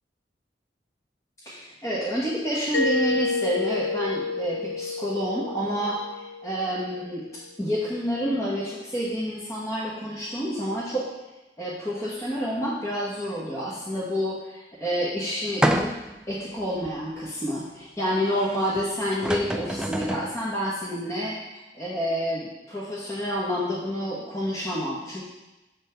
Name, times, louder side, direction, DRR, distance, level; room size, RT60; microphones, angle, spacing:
voice 1, 1.4-7.3 7.6-11.0 11.6-15.8 16.3-25.2, equal, 20° left, -7 dB, 1.2 m, -29 dB
Mallet percussion, 2.7-7.3, left 3 dB, 85° left, 0.5 m, -30 dB
sound 1, 15.6-16.2 16.8-16.9 18.8-18.9 19.1-20.3, right 1 dB, 5° right, 0.3 m, -26 dB
7.8 x 4.4 x 5.7 m, 1.0 s
head